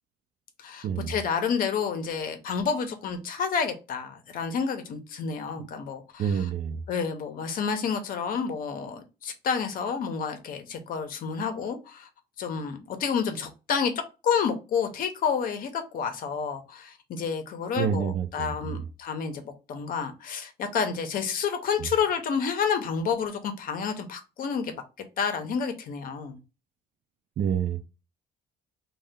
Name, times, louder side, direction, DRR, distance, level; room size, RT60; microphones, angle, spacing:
voice 1, 0.6-6.5 6.9-12.1 12.4-13.9 14.2-24.7 25.2-26.4, left 6 dB, 55° left, 0.7 m, -29 dB
voice 2, 6.2-6.8 17.8-18.8 27.4-27.8, right 8 dB, 50° right, 0.4 m, -28 dB
2.7 x 2.2 x 3.4 m
cardioid pair, 110°, 17 cm